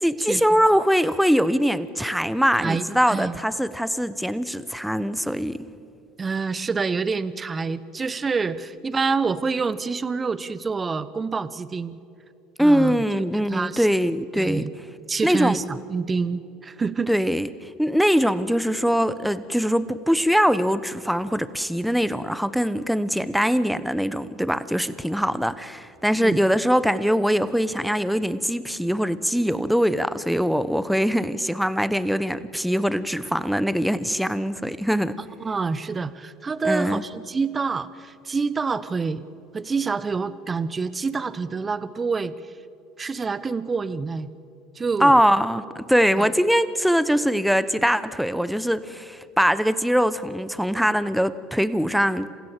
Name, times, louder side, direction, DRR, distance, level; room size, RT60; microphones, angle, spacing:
voice 1, 0.0-5.7 12.6-14.6 15.2-15.6 17.1-35.2 36.6-37.0 45.0-52.3, equal, ahead, 14 dB, 1.1 m, -22 dB
voice 2, 2.6-3.4 6.2-12.0 12.6-13.9 14.4-14.7 15.1-17.1 26.2-26.4 35.4-39.2 39.5-42.3 43.0-44.3 44.7-45.2 46.2-46.3, right 4 dB, 25° right, 15 dB, 1.1 m, -27 dB
28.0 x 16.0 x 7.5 m, 2.6 s
hypercardioid pair, 80°, 0 cm